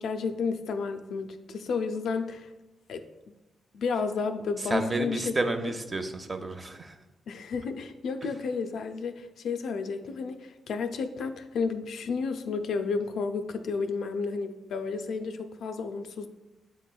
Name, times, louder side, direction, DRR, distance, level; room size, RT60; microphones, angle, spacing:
voice 1, 0.0-2.5 2.9-3.1 3.7-5.3 7.3-16.3, left 4 dB, 75° left, 8 dB, 0.4 m, -32 dB
voice 2, 4.6-7.0, right 2 dB, 30° right, 6 dB, 0.6 m, -31 dB
7.6 x 2.9 x 2.2 m, 1.0 s
supercardioid pair, 50°, 0 cm